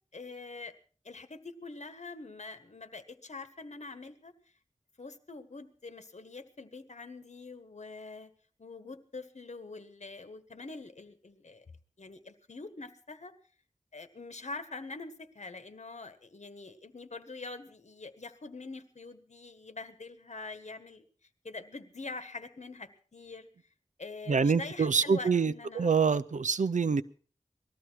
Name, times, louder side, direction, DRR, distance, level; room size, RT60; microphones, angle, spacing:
voice 1, 0.1-0.7 1.0-4.3 5.0-8.3 8.6-11.6 12.0-13.3 13.9-21.0 21.4-23.5 24.0-25.9, left 3 dB, 65° left, 10 dB, 1.5 m, -44 dB
voice 2, 24.3-27.0, right 5 dB, 85° right, 14 dB, 0.6 m, -26 dB
19.5 x 13.5 x 4.6 m, 0.42 s
wide cardioid pair, 70°, 12 cm